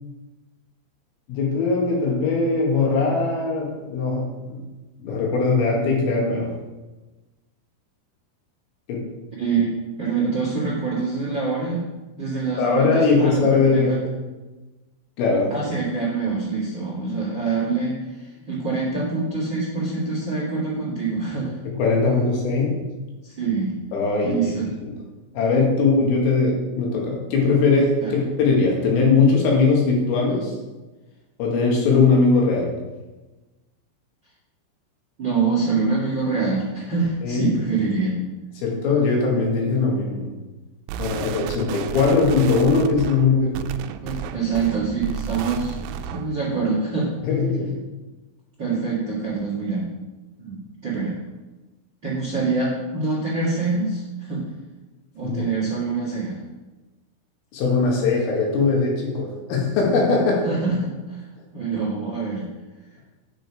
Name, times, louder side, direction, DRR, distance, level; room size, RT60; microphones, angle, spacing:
voice 1, 1.3-4.6 5.0-6.5 8.9-9.0 12.6-13.9 15.2-15.5 21.7-22.8 23.9-24.3 25.3-30.5 31.4-32.7 37.2-37.5 38.6-40.3 41.0-43.7 47.2-47.8 55.2-55.4 57.5-60.4, left 4 dB, 80° left, -2 dB, 4.7 m, -20 dB
voice 2, 10.0-11.8 12.2-14.0 15.5-21.6 23.2-23.7 24.2-24.7 28.0-28.1 35.2-38.2 44.0-47.1 48.6-49.8 50.4-50.6 50.8-51.1 52.0-54.4 55.1-56.4 60.4-61.2 61.5-62.4, right 4 dB, 40° right, -6 dB, 1.7 m, -25 dB
sound 1, 40.9-46.4, right 9 dB, 85° right, 3.1 m, -32 dB
9.2 x 7.9 x 5.0 m, 1.2 s
omnidirectional pair, 5.9 m